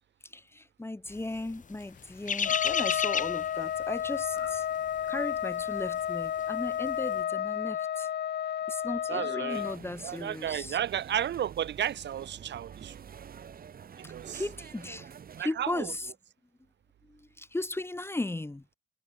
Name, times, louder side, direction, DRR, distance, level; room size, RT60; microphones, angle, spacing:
voice 1, 0.5-4.6 5.1-8.1 8.7-10.8 14.3-15.0 15.4-16.1 17.4-18.7, left 2 dB, 10° left, 1.3 m, -36 dB
sound 1, 1.3-6.4 6.7-7.0, left 6 dB, 40° left, 3.0 m, -32 dB
Trumpet, 2.4-9.8, left 10 dB, 55° left, 1.0 m, -32 dB
voice 2, 9.1-9.7 10.0-13.0 14.1-14.4 15.4-15.9, right 10 dB, 60° right, 1.7 m, -33 dB
sound 2, 9.5-15.4, right 7 dB, 45° right, 2.2 m, -48 dB
cardioid pair, 90°, 20 cm